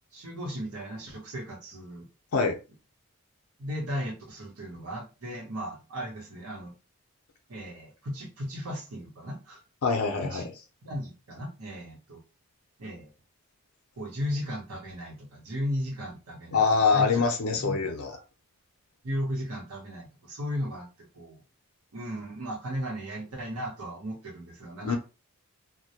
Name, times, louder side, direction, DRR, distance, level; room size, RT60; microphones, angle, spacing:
voice 1, 0.1-2.1 3.6-6.7 7.5-9.6 10.2-10.5 10.8-12.2 12.8-13.1 14.0-16.6 16.9-17.1 17.6-17.8 18.1-18.2 19.0-21.4 21.9-25.0, equal, 85° right, 0.8 m, -36 dB
voice 2, 9.8-10.4 16.5-18.1 24.8-25.0, left 5 dB, 85° left, 0.5 m, -24 dB
2.1 x 2.1 x 2.7 m
head